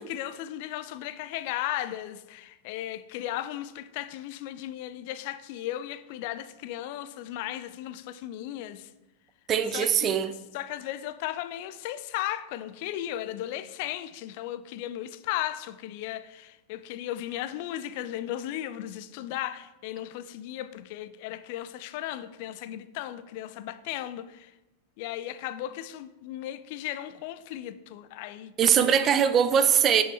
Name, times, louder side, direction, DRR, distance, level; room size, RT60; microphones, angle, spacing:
voice 1, 0.0-8.9 9.7-10.2 10.5-24.5 25.0-29.1, left 13 dB, 45° left, 0.4 m, -36 dB
voice 2, 9.5-10.3 28.6-30.0, right 8 dB, 30° right, 0.6 m, -21 dB
10.0 x 7.0 x 3.4 m
figure-of-eight pair, 90°, 0 cm